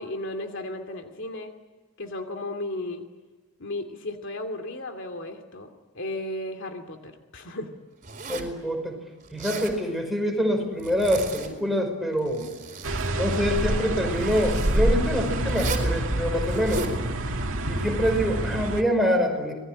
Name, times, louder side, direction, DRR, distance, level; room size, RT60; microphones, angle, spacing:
voice 1, 0.0-1.5 2.0-3.1 3.6-5.7 5.9-7.7, left 1 dB, 60° left, 5 dB, 2.6 m, -34 dB
Zipper (clothing), 8.0-8.6 9.2-9.8 10.8-11.7 12.1-13.1 14.2-14.8 15.5-15.9 16.4-17.0, right 4 dB, 40° right, 4.3 m, -36 dB
voice 2, 8.3-9.0 9.3-12.5 13.1-16.9 17.7-19.5, equal, ahead, 3 dB, 5.4 m, -25 dB
sound 1, 12.8-18.8, right 1 dB, 60° right, 2.5 m, -27 dB
26.5 x 20.0 x 10.0 m, 1.3 s
head